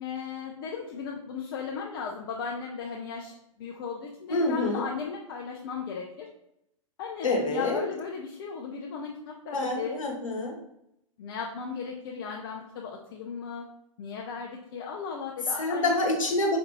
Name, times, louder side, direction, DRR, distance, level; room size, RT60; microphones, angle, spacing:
voice 1, 0.0-6.3 7.0-10.0 11.2-13.6 14.0-15.9, left 6 dB, 45° left, 0 dB, 0.5 m, -36 dB
voice 2, 4.3-4.8 7.2-7.8 9.5-10.6 15.6-16.6, left 2 dB, 70° left, 1 dB, 1.1 m, -27 dB
5.2 x 2.6 x 2.9 m, 0.79 s
figure-of-eight pair, 105°, 17 cm